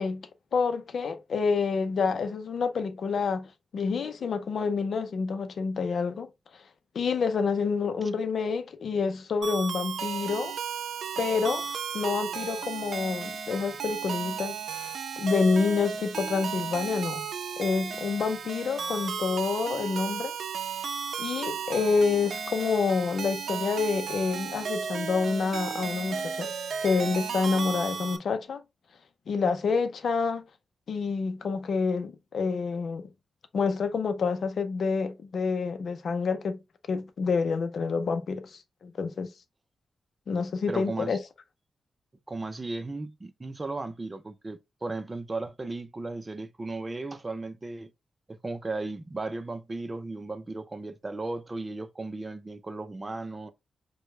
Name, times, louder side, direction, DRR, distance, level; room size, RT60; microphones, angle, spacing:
voice 1, 0.0-6.3 6.9-10.6 11.2-11.7 11.9-17.3 17.6-20.3 21.2-26.5 26.8-28.6 29.3-30.4 30.9-33.1 33.5-36.6 36.9-39.3 40.3-41.2, left 5 dB, 65° left, 0.6 m, -28 dB
sound 1, 9.4-28.2, right 6 dB, 70° right, 0.6 m, -34 dB
voice 2, 40.7-41.2 42.3-47.9 48.3-53.5, right 2 dB, 25° right, 0.6 m, -36 dB
5.0 x 2.2 x 3.2 m
wide cardioid pair, 120°, 0 cm